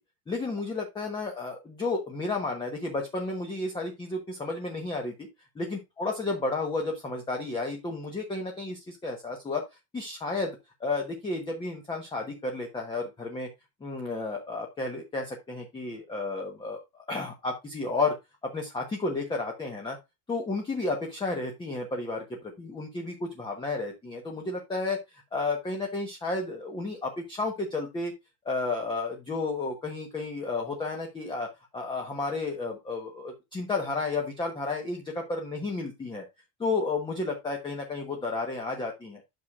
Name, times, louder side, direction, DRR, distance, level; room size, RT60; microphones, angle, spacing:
voice 1, 0.3-5.1 5.6-9.6 9.9-13.5 13.8-18.1 18.4-20.0 20.3-28.1 28.4-36.2 36.6-39.2, left 3 dB, 10° left, 2 dB, 1.2 m, -32 dB
9.4 x 6.3 x 2.5 m, 0.22 s
supercardioid pair, 155°, 42 cm